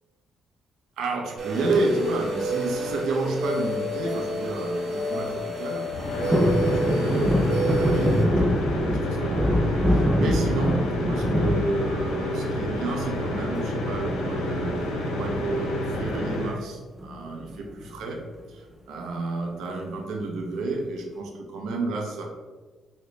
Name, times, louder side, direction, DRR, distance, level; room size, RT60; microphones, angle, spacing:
voice 1, 1.0-18.2 18.5-22.2, right 3 dB, 80° right, 2 dB, 0.6 m, -31 dB
sound 1, 1.4-8.2, right 1 dB, 45° right, 0.9 m, -29 dB
sound 2, 5.9-16.6, left 1 dB, 90° left, 0.7 m, -29 dB
sound 3, 6.3-12.5 12.9-13.5 14.8-15.2 15.5-15.6 15.8-16.1 17.0-17.9 18.4-18.5, left 1 dB, 10° right, 0.4 m, -24 dB
3.8 x 2.1 x 3.1 m, 1.3 s
cardioid pair, 90°, 0 cm